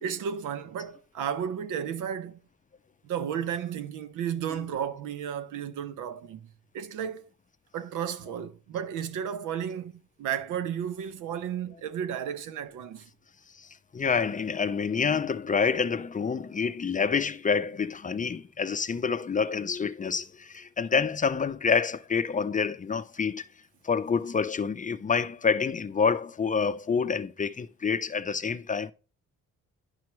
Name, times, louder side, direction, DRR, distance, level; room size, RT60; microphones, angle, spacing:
voice 1, 0.0-2.4 3.0-6.5 6.7-7.2 7.7-13.1, right 8 dB, 85° right, 0.9 m, -33 dB
voice 2, 13.9-23.5 23.8-28.9, left 5 dB, 25° left, 0.5 m, -27 dB
10.5 x 5.8 x 3.1 m
cardioid pair, 90°, 30 cm